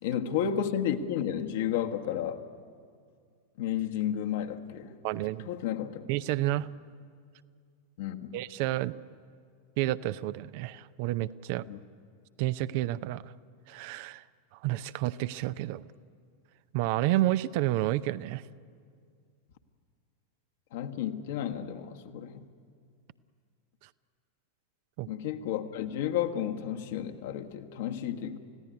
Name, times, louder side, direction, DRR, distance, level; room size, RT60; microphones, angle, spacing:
voice 1, 0.0-2.4 3.6-4.9 5.4-6.1 8.0-8.4 11.7-11.8 20.7-22.5 25.1-28.4, left 9 dB, 55° left, 5 dB, 1.5 m, -32 dB
voice 2, 5.0-5.5 6.1-6.7 8.3-9.0 9.8-11.6 12.4-13.3 13.7-14.2 14.6-15.8 16.7-18.4 25.0-25.1, right 15 dB, 45° right, 15 dB, 0.6 m, -30 dB
29.0 x 16.5 x 9.7 m, 2.2 s
figure-of-eight pair, 90°, 0 cm